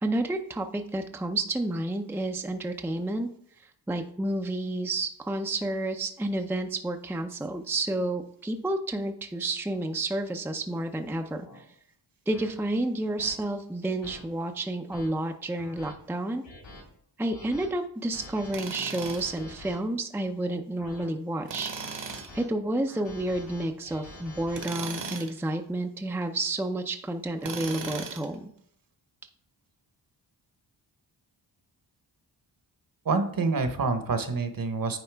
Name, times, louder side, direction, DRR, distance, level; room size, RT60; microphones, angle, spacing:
voice 1, 0.0-3.3 3.6-11.6 12.3-16.4 17.2-21.7 22.3-28.5, right 2 dB, 5° right, 5 dB, 0.5 m, -30 dB
sound 1, 10.6-10.8 11.4-11.6 12.3-12.5 13.2-13.4 14.0-14.2 14.7-15.1 15.6-15.9 16.4-16.8 17.3-17.7 18.1-18.5 19.0-19.8 20.4-21.1 21.8-22.4 22.9-24.6, left 2 dB, 70° left, 3.0 m, -47 dB
Tools, 18.5-19.4 21.5-22.3 24.5-25.4 27.4-28.3, right 5 dB, 70° right, 1.4 m, -37 dB
voice 2, 33.0-35.0, right 4 dB, 50° right, 8 dB, 1.1 m, -27 dB
9.5 x 4.1 x 3.4 m, 0.68 s
cardioid pair, 75°, 45 cm